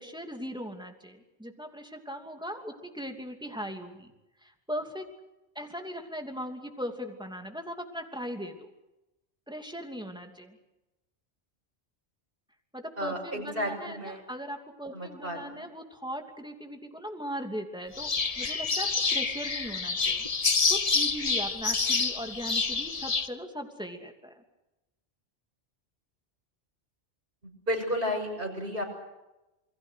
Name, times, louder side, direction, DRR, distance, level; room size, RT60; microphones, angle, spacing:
voice 1, 0.0-4.1 4.4-5.0 5.5-8.7 9.5-10.6 12.7-18.1 18.4-20.2 20.7-24.3, equal, 5° right, 3 dB, 2.8 m, -39 dB
voice 2, 13.0-14.2 14.9-15.6 27.7-28.8, equal, 55° right, 2 dB, 6.3 m, -32 dB
sound 1, 18.0-23.3, left 4 dB, 35° left, 1.1 m, -28 dB
28.5 x 22.0 x 6.5 m, 0.99 s
omnidirectional pair, 1.1 m